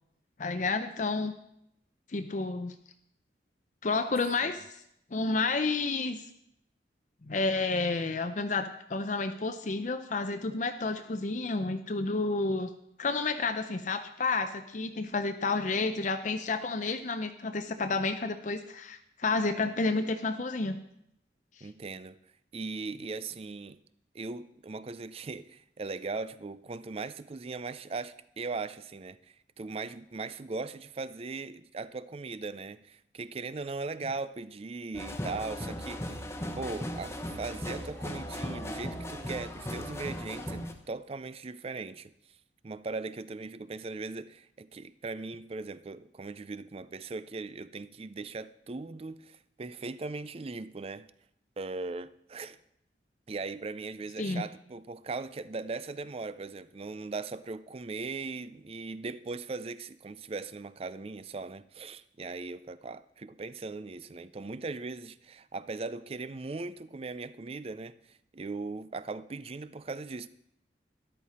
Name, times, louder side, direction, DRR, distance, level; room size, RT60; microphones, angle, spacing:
voice 1, 0.4-1.3 2.1-2.7 3.8-4.8 5.1-6.2 7.2-12.7 13.0-20.8 21.6-21.7 54.2-54.4, left 3 dB, 45° left, 0.6 m, -30 dB
voice 2, 21.6-22.2 22.5-23.8 24.1-36.3 36.5-42.1 42.6-51.1 51.6-52.6 53.3-70.3, right 3 dB, 35° right, 0.4 m, -39 dB
sound 1, 34.9-40.7, equal, 15° left, 1.0 m, -37 dB
13.0 x 11.0 x 4.2 m
head